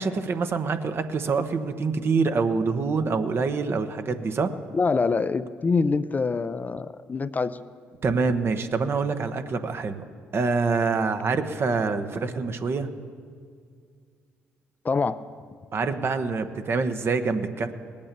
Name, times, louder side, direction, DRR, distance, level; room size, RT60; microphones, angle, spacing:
voice 1, 0.0-4.5 8.0-10.0 10.3-12.9 15.7-17.7, right 4 dB, 50° right, 8 dB, 1.1 m, -26 dB
voice 2, 4.7-7.6 14.8-15.2, left 4 dB, 30° left, 13 dB, 0.5 m, -25 dB
19.0 x 8.7 x 6.8 m, 2.1 s
supercardioid pair, 60°, 5 cm